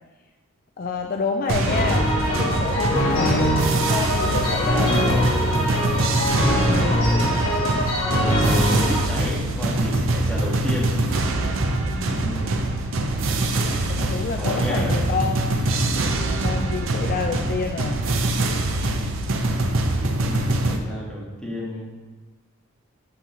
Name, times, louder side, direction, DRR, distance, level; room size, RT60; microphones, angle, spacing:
voice 1, 0.8-2.1 2.4-3.6 3.9-5.3 11.9-12.3 13.6-15.7 16.2-18.0, left 5 dB, 40° left, 4 dB, 0.4 m, -29 dB
sound 1, 1.5-20.8, right 2 dB, 65° right, 0.6 m, -24 dB
sound 2, 1.6-9.0, left 1 dB, 65° left, 1.8 m, -22 dB
voice 2, 8.4-11.0 12.1-12.6 14.4-15.0 19.7-21.9, equal, 5° left, -6 dB, 1.5 m, -32 dB
8.4 x 5.4 x 3.0 m, 1.3 s
head